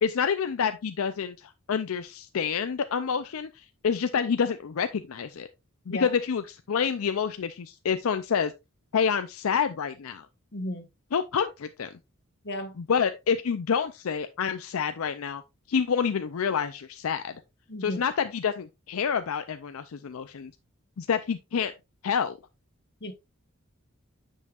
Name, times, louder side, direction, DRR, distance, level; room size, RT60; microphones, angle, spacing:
voice 1, 0.0-5.5 5.9-8.5 8.9-10.3 11.1-11.9 12.8-15.4 15.7-17.3 17.8-20.5 21.0-21.7 22.0-22.4, left 6 dB, 80° left, 0.5 m, -28 dB
voice 2, 10.5-10.9 12.4-12.7 17.7-18.0 23.0-23.1, left 1 dB, 50° left, 1.3 m, -34 dB
9.3 x 5.6 x 2.4 m
head